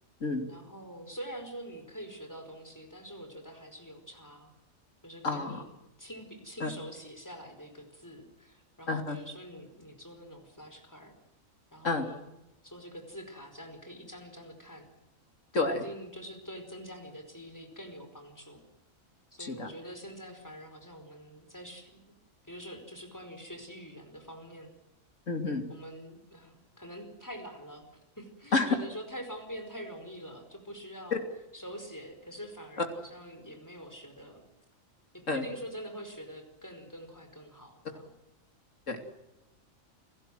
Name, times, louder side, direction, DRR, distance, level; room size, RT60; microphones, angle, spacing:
voice 1, 0.5-4.5 5.0-5.7 6.0-11.1 11.7-12.3 12.6-14.9 15.5-18.6 19.3-22.0 22.4-24.7 25.7-27.9 28.2-31.2 31.5-34.4 35.1-38.1, equal, 15° left, 6 dB, 5.0 m, -45 dB
voice 2, 5.2-5.6 6.6-6.7 8.9-9.2 11.8-12.1 15.5-15.8 19.4-19.7 25.3-25.7 28.5-28.8 31.1-31.2 35.3-35.5 38.9-39.1, left 3 dB, 65° left, 5 dB, 3.4 m, -29 dB
29.5 x 17.0 x 7.8 m, 0.98 s
omnidirectional pair, 1.4 m